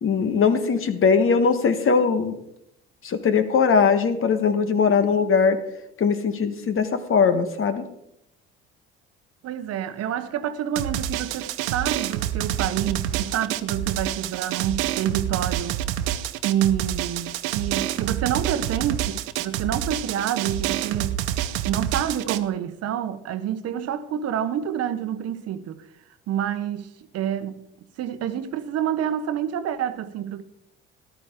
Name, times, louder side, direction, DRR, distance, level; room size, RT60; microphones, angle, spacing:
voice 1, 0.0-2.3 3.0-5.6 6.0-7.8, left 5 dB, 45° left, 1.3 m, -20 dB
voice 2, 9.4-15.8 16.4-21.2 21.7-25.9 26.3-27.7 28.0-30.4, right 10 dB, 55° right, 0.9 m, -28 dB
Drum, 10.7-22.4, right 12 dB, 75° right, 0.6 m, -28 dB
13.5 x 11.5 x 3.6 m
hypercardioid pair, 60°, 30 cm